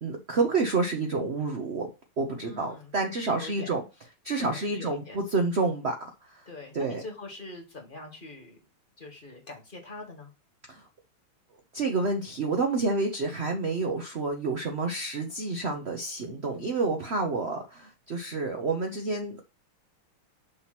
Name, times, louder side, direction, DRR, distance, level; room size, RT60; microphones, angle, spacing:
voice 1, 0.0-1.9 2.2-3.8 4.2-6.0 6.2-6.4 6.7-7.0 10.7-10.8 11.7-19.4, right 3 dB, 60° right, 3 dB, 0.6 m, -29 dB
voice 2, 2.4-3.7 4.3-5.2 6.4-8.6 9.0-10.3, left 2 dB, 25° left, 1 dB, 1.5 m, -43 dB
6.4 x 2.9 x 5.8 m, 0.29 s
omnidirectional pair, 2.4 m